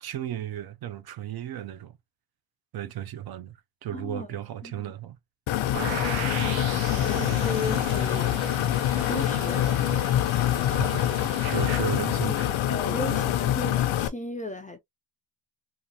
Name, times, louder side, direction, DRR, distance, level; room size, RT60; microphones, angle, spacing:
voice 1, 0.0-2.0 2.7-5.2 6.4-6.7 7.2-7.6 9.9-10.0 10.7-12.6 13.1-13.2, right 11 dB, 50° right, 0.5 m, -35 dB
voice 2, 3.9-4.3 4.6-4.9 6.9-8.4 9.0-10.2 12.2-14.8, left 2 dB, 20° left, 0.3 m, -36 dB
sound 1, 5.5-14.1, left 12 dB, 85° left, 0.7 m, -25 dB
sound 2, 5.7-11.8, right 8 dB, 70° right, 1.0 m, -37 dB
3.8 x 2.4 x 2.7 m
cardioid pair, 155°, 47 cm